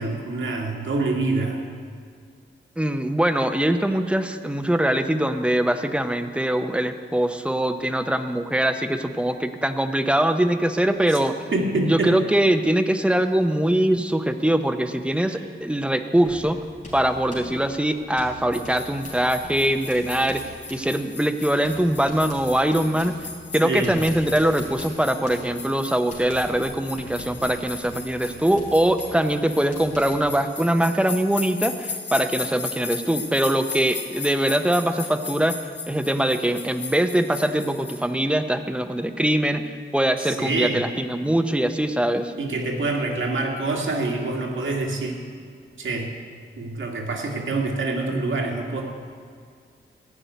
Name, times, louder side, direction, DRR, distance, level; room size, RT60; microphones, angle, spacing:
voice 1, 0.0-1.6 11.1-11.2 11.5-12.1 15.2-15.5 23.6-23.9 40.2-40.8 42.4-45.2 45.8-46.1 46.6-48.8, right 2 dB, 80° right, 0 dB, 1.7 m, -26 dB
voice 2, 2.8-11.4 11.8-16.6 16.9-23.2 23.5-35.6 35.9-42.3, right 1 dB, 5° right, 8 dB, 0.6 m, -22 dB
Writing, 16.2-30.4, left 1 dB, 40° left, 3.7 m, -44 dB
sound 1, 18.5-38.0, left 4 dB, 60° left, 1.6 m, -37 dB
14.5 x 5.5 x 9.2 m, 2.2 s
wide cardioid pair, 115°, 20 cm